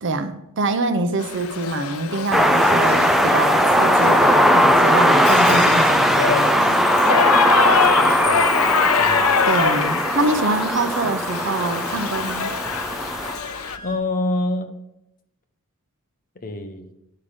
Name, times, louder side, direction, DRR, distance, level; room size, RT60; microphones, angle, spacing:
voice 1, 0.0-6.8 9.5-12.5, right 2 dB, 55° right, 0.7 m, -25 dB
Shout / Livestock farm animals working animals, 1.2-13.8, left 6 dB, 75° left, 0.5 m, -25 dB
sound 1, 2.3-13.4, equal, ahead, 0.4 m, -18 dB
sound 2, 7.3-13.9, equal, 20° left, 1.9 m, -41 dB
voice 2, 8.0-8.5 9.0-9.3 11.0-11.1 13.8-14.7 16.4-16.9, left 2 dB, 40° left, 0.9 m, -27 dB
11.0 x 5.7 x 5.1 m
head